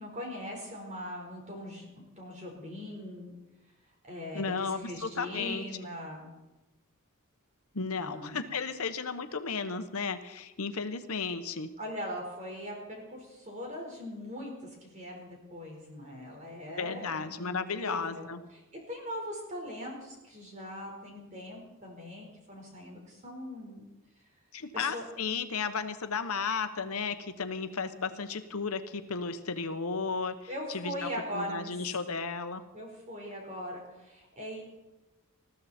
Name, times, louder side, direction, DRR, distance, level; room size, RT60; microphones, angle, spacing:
voice 1, 0.0-3.4 4.0-6.3 8.0-8.4 11.8-18.6 18.9-23.8 24.2-24.3 24.7-25.0 30.5-31.9 32.7-34.6, equal, 35° right, 0 dB, 4.6 m, -41 dB
voice 2, 4.3-5.6 7.7-11.7 16.7-18.4 24.5-31.1 31.3-32.6, left 5 dB, 75° left, 9 dB, 1.0 m, -34 dB
20.5 x 14.5 x 4.3 m, 1.1 s
head